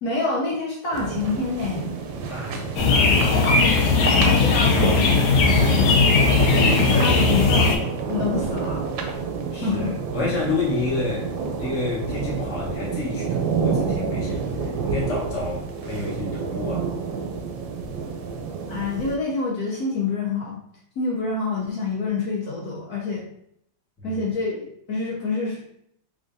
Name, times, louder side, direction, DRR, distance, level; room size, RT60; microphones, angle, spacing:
voice 1, 0.0-1.9 3.3-3.7 4.1-5.3 6.9-7.8 8.1-8.8 9.6-10.0 18.7-20.6 21.0-23.3 24.0-25.6, left 3 dB, 65° left, -3 dB, 1.0 m, -27 dB
sound 1, 0.9-19.2, right 5 dB, 80° right, 1.3 m, -29 dB
voice 2, 2.1-3.4 9.5-11.3 11.6-16.9 17.6-17.8 24.0-24.2, left 2 dB, 15° left, -6 dB, 0.5 m, -30 dB
sound 2, 2.8-7.8, left 4 dB, 80° left, 1.5 m, -18 dB
3.8 x 3.3 x 2.6 m, 0.71 s
omnidirectional pair, 2.2 m